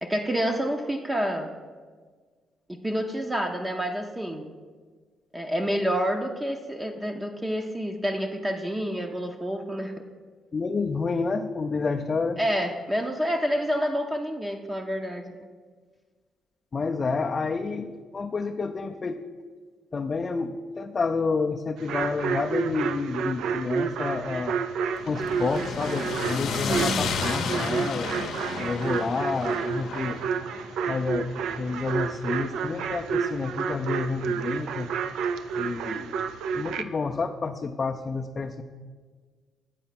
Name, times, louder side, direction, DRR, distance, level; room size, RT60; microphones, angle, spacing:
voice 1, 0.0-1.5 2.7-4.5 5.3-9.9 12.4-15.2, equal, 15° right, 3 dB, 0.6 m, -28 dB
voice 2, 10.5-12.4 16.7-19.3 19.9-24.6 25.1-28.1 28.5-30.2 30.9-34.9 35.5-36.2 36.5-38.6, left 4 dB, 35° left, 2 dB, 0.4 m, -29 dB
sound 1, 21.8-36.8, right 6 dB, 85° right, 0.3 m, -30 dB
sound 2, 25.0-33.2, left 5 dB, 75° left, 0.7 m, -33 dB
8.1 x 4.3 x 5.8 m, 1.5 s
cardioid pair, 90°, 0 cm